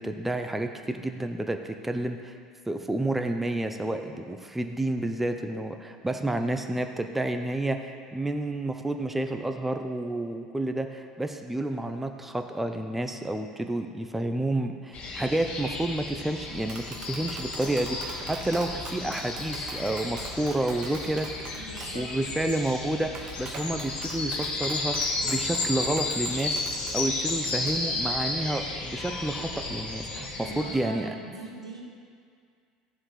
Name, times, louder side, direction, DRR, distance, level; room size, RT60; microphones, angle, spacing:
voice 1, 0.0-2.3 2.7-21.7 21.9-31.1, right 1 dB, 5° right, 6 dB, 0.7 m, -30 dB
sound 1, 14.9-30.8, left 3 dB, 45° left, 1.8 m, -33 dB
Tap, 16.4-27.7, right 3 dB, 25° right, 1.2 m, -44 dB
voice 2, 21.5-22.1 30.4-31.8, right 2 dB, 80° right, -1 dB, 1.4 m, -41 dB
14.0 x 11.0 x 3.3 m, 2.2 s
figure-of-eight pair, 65°, 3 cm